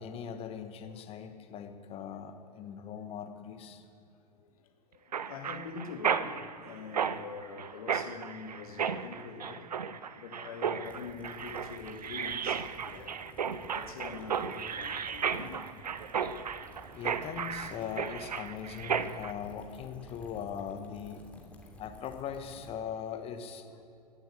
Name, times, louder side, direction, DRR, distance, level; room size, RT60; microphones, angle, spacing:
voice 1, 0.0-3.8 16.9-21.2 21.8-23.7, left 8 dB, 30° left, 7 dB, 1.2 m, -40 dB
voice 2, 2.6-3.0 4.3-9.7 10.0-13.2 13.6-15.7 21.3-21.5 23.7-23.8, left 5 dB, 60° left, 4 dB, 2.1 m, -45 dB
Mechanisms, 5.1-19.3, right 7 dB, 75° right, 0.7 m, -34 dB
sound 1, 10.8-22.7, left 1 dB, 5° left, 2.9 m, -54 dB
17.0 x 8.9 x 8.6 m, 2.7 s
figure-of-eight pair, 95°, 21 cm